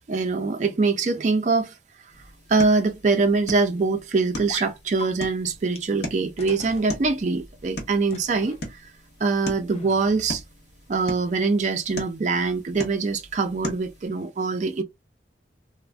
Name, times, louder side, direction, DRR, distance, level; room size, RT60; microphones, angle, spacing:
voice 1, 0.1-1.7 2.5-8.6 9.2-10.4 10.9-14.8, right 4 dB, 40° right, 0.4 m, -23 dB
sound 1, 2.1-14.1, left 1 dB, 70° left, 1.0 m, -39 dB
sound 2, 4.5-4.7 5.0-5.1 5.7-5.8 6.4-6.9 8.1-8.6 9.7-10.4, left 3 dB, 35° left, 0.5 m, -40 dB
3.2 x 2.1 x 2.4 m
head